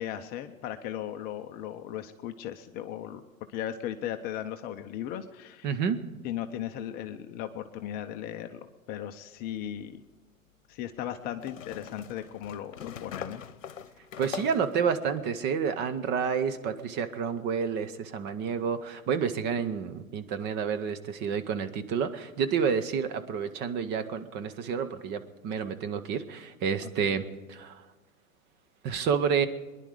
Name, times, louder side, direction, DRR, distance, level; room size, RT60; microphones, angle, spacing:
voice 1, 0.0-3.2 3.5-5.8 6.2-10.0 10.7-13.4 27.0-27.1, left 11 dB, 25° left, 7 dB, 0.6 m, -37 dB
voice 2, 5.6-6.0 14.2-27.2 27.5-27.8 28.8-29.5, right 6 dB, 25° right, 10 dB, 0.8 m, -29 dB
sound 1, 9.4-9.5 11.4-14.8, left 8 dB, 65° left, 1.0 m, -41 dB
23.5 x 11.0 x 5.0 m, 1.2 s
figure-of-eight pair, 105°, 41 cm